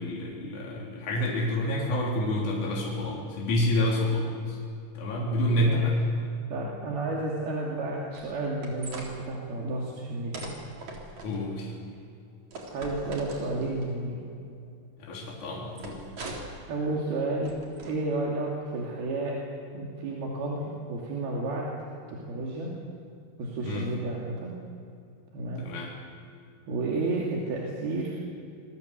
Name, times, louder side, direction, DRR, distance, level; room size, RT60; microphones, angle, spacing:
voice 1, 0.0-4.6 4.9-5.9 11.2-11.7 15.0-16.0 23.6-23.9 25.6-25.9, left 1 dB, 55° left, -3 dB, 4.8 m, -28 dB
voice 2, 5.6-5.9 6.5-10.5 12.7-14.2 16.7-17.5 17.8-19.4 19.7-21.7 22.1-22.7 23.4-24.5 25.3-25.6 26.7-28.2, right 2 dB, 85° right, -3 dB, 4.7 m, -31 dB
sound 1, 8.1-9.1 10.3-11.4 12.5-13.8 15.8-16.6 17.4-17.9, right 2 dB, 50° right, 4.9 m, -41 dB
28.0 x 21.5 x 8.2 m, 2.5 s
omnidirectional pair, 4.3 m